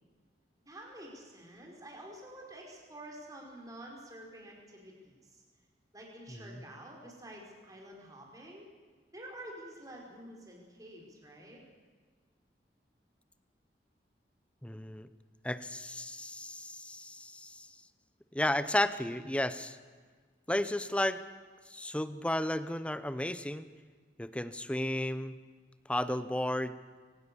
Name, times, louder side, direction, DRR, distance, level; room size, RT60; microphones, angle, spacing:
voice 1, 0.6-5.4 5.9-8.7 9.1-11.6, right 1 dB, 20° right, 0 dB, 4.9 m, -49 dB
voice 2, 14.6-15.1 15.4-17.7 18.3-19.8 20.5-21.2 21.7-23.6 24.2-25.3 25.9-26.7, left 1 dB, 5° left, 13 dB, 0.7 m, -33 dB
23.5 x 18.5 x 6.9 m, 1.5 s
head